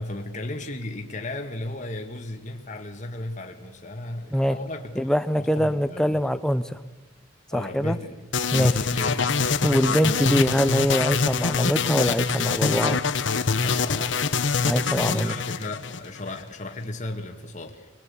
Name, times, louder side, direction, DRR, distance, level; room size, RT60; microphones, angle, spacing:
voice 1, 0.0-5.0 5.4-6.2 7.5-8.1 8.8-9.5 13.5-17.9, left 2 dB, 40° left, 3 dB, 1.9 m, -35 dB
voice 2, 5.0-6.8 7.5-8.0 8.5-8.9 9.6-13.0 14.6-15.3, equal, 5° left, 12 dB, 0.9 m, -23 dB
sound 1, 8.3-16.4, left 5 dB, 75° left, 1.1 m, -24 dB
25.0 x 21.5 x 8.5 m, 1.2 s
head